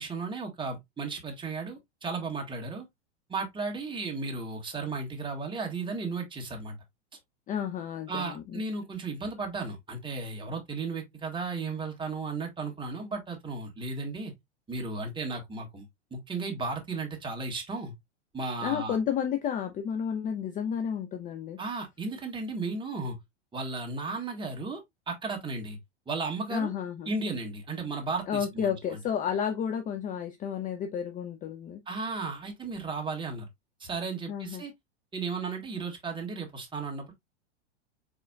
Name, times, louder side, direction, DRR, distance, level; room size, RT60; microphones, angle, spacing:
voice 1, 0.0-2.8 3.3-6.7 8.1-14.3 14.7-17.9 18.3-19.0 21.6-23.2 23.5-24.8 25.1-25.8 26.1-26.7 27.1-28.7 31.9-33.5 33.8-34.7 35.1-37.1, right 3 dB, 15° right, 1.8 m, -34 dB
voice 2, 7.5-8.6 18.6-21.6 26.5-27.1 28.3-31.8 34.3-34.6, left 8 dB, 25° left, 0.5 m, -31 dB
4.8 x 4.3 x 2.4 m
hypercardioid pair, 110°, 35 cm